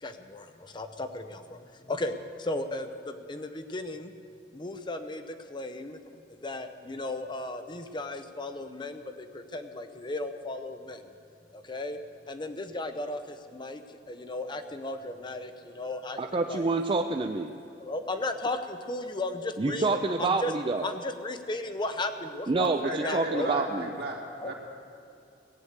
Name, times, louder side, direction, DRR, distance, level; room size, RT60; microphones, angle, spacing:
voice 1, 0.0-4.1 4.5-6.0 6.4-11.0 11.5-12.0 12.3-13.8 14.1-16.7 17.8-20.5 20.8-23.5 24.4-24.5, left 2 dB, 25° left, 8 dB, 0.7 m, -35 dB
voice 2, 16.2-17.5 19.6-20.9 22.5-23.9, right 3 dB, 30° right, 5 dB, 0.4 m, -27 dB
voice 3, 22.8-24.5, right 1 dB, 65° right, -2 dB, 2.6 m, -35 dB
17.5 x 8.0 x 8.1 m, 2.5 s
head